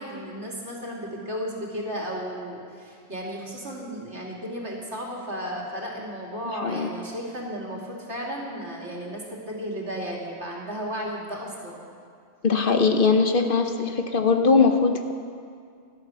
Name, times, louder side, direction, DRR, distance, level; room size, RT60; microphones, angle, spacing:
voice 1, 0.0-11.8, equal, 75° right, -3 dB, 3.2 m, -34 dB
voice 2, 12.4-15.1, left 4 dB, 50° left, 6 dB, 1.1 m, -21 dB
16.5 x 12.5 x 6.3 m, 2.2 s
omnidirectional pair, 1.2 m